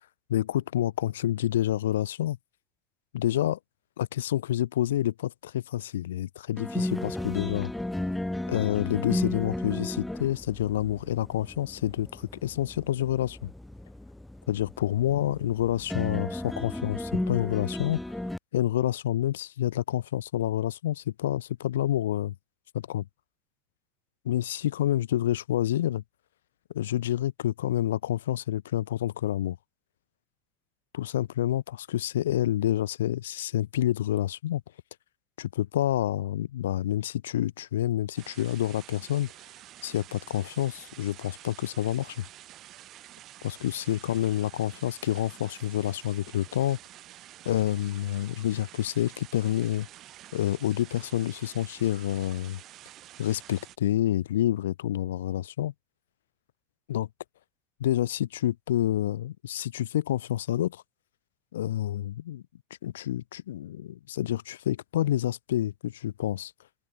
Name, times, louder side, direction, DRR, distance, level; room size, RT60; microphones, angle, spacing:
voice 1, 0.3-2.4 3.1-3.6 4.0-7.7 8.5-13.5 14.5-18.0 18.5-22.3 22.7-23.0 24.2-26.0 26.7-29.6 30.9-34.6 35.4-39.3 39.8-42.2 43.4-46.8 47.5-49.9 50.3-52.6 53.2-55.7 56.9-57.1 57.8-60.8 61.5-62.4 62.8-66.5, left 12 dB, 90° left, 0.5 m, -28 dB
sound 1, 6.6-18.4, left 1 dB, 5° left, 0.4 m, -34 dB
sound 2, 38.2-53.8, right 14 dB, 45° right, 1.8 m, -49 dB
supercardioid pair, 105°, 0 cm